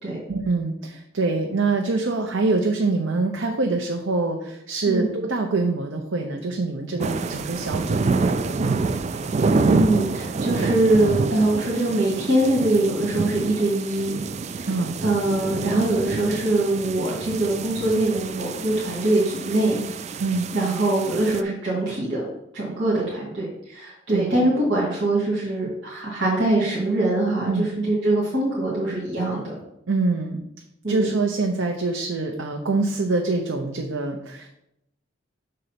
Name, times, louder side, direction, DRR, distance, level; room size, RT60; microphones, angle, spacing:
voice 1, 0.3-8.8 14.7-15.0 20.2-20.5 24.1-24.3 27.4-27.7 29.9-30.4 30.9-34.5, right 3 dB, 80° right, 3 dB, 0.7 m, -25 dB
sound 1, 7.0-21.4, right 4 dB, 35° right, 0.3 m, -27 dB
voice 2, 9.6-14.1 14.6-14.7 15.0-19.8 20.5-22.2 22.5-29.6 30.8-31.1, right 2 dB, 60° right, -6 dB, 2.2 m, -23 dB
6.5 x 4.0 x 5.8 m, 0.82 s
head